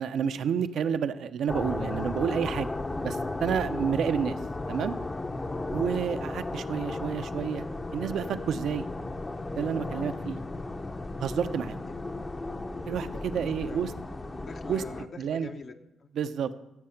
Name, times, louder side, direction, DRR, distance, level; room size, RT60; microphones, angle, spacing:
voice 1, 0.0-2.7 3.0-4.4 4.7-4.9 5.7-7.6 7.9-8.8 9.6-10.4 11.2-11.8 12.8-13.9 14.7-14.8 15.2-15.5 16.2-16.7, right 8 dB, 70° right, 10 dB, 0.8 m, -30 dB
sound 1, 1.5-15.0, left 2 dB, 20° left, 0.7 m, -35 dB
voice 2, 12.9-14.0 14.4-16.1, left 4 dB, 50° left, 4 dB, 0.9 m, -46 dB
15.5 x 7.7 x 5.9 m, 0.93 s
cardioid pair, 90°, 0 cm